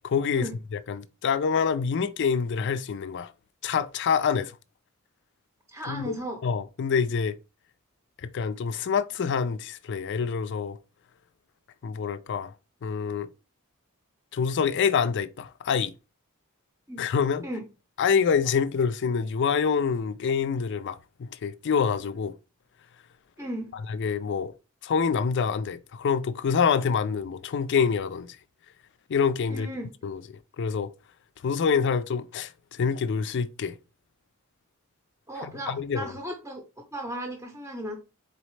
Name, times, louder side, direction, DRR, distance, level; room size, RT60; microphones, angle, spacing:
voice 1, 0.0-3.3 3.6-4.6 5.9-6.1 6.4-7.3 8.2-10.8 11.8-12.5 12.8-13.3 14.3-15.9 17.0-17.4 18.0-22.3 23.9-24.5 24.8-28.3 29.1-29.7 30.0-30.2 30.6-30.9 31.4-33.8 35.4-36.1, left 6 dB, 55° left, 0.4 m, -26 dB
voice 2, 5.7-6.4 16.9-17.0 17.4-17.6 23.4-23.7 29.5-29.9 35.3-36.7 36.9-38.0, right 1 dB, 15° right, 0.7 m, -35 dB
4.0 x 4.0 x 3.2 m
head